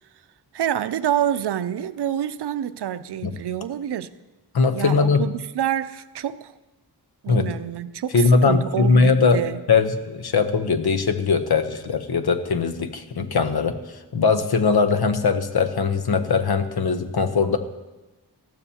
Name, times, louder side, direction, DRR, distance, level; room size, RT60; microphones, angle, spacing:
voice 1, 0.5-4.1 4.7-6.5 7.2-9.6, right 10 dB, 75° right, 0.5 m, -27 dB
voice 2, 4.5-5.2 7.3-7.5 8.1-9.4 9.7-13.8 14.1-17.6, left 4 dB, 70° left, 0.9 m, -20 dB
19.5 x 14.0 x 2.8 m
wide cardioid pair, 140°, 40 cm